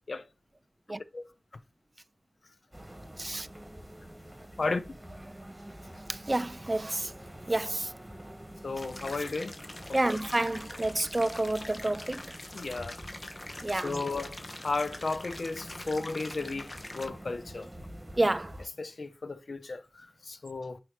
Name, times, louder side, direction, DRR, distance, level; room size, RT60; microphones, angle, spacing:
sound 1, 2.7-18.7, right 1 dB, 15° right, 1.6 m, -47 dB
voice 1, 6.1-7.1 7.5-7.9 9.9-12.3 13.6-14.1 18.2-18.5, right 2 dB, 35° right, 0.4 m, -29 dB
voice 2, 8.6-9.5 9.8-10.0 12.5-13.0 13.8-14.4 14.6-17.7 18.8-20.8, left 3 dB, 75° left, 0.7 m, -34 dB
sound 2, 8.8-17.1, left 2 dB, 50° left, 1.0 m, -44 dB
4.7 x 4.2 x 5.0 m
wide cardioid pair, 50°, 0 cm